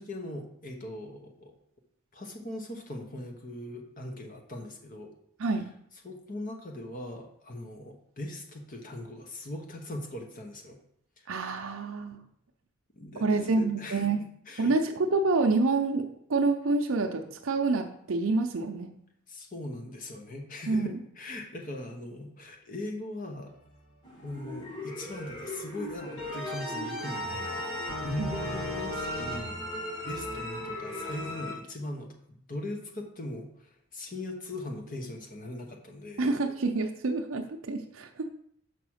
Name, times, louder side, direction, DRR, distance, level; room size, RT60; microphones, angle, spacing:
voice 1, 0.0-1.5 2.1-5.1 6.0-10.8 13.0-14.0 14.5-14.7 19.3-23.5 24.2-29.6 30.0-32.1 32.5-36.3, left 1 dB, 40° left, 3 dB, 1.0 m, -40 dB
voice 2, 11.3-12.2 13.2-14.2 14.6-18.9 20.7-21.0 28.2-28.4 36.2-38.3, right 3 dB, 70° right, 4 dB, 0.6 m, -27 dB
sound 1, 24.0-31.5, left 1 dB, 20° left, 1.9 m, -38 dB
sound 2, 26.2-29.4, equal, 85° left, 1.4 m, -36 dB
6.0 x 4.9 x 6.3 m, 0.68 s
head